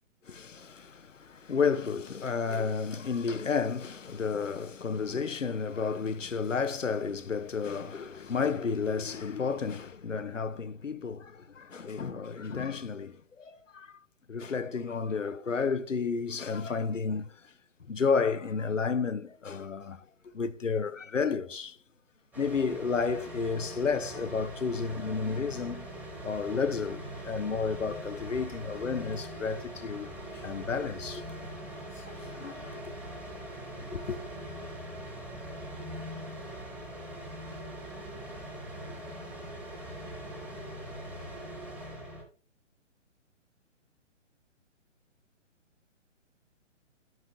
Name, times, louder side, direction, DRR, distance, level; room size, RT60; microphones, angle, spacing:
voice 1, 0.3-14.0 14.3-17.4 17.9-20.0 20.3-21.8 22.4-25.9 26.2-31.4 32.0-32.9 33.9-34.2, left 5 dB, 85° left, 0.8 m, -32 dB
sound 1, 22.3-42.2, right 1 dB, 5° right, 1.6 m, -42 dB
12.0 x 6.2 x 2.6 m
figure-of-eight pair, 135°, 37 cm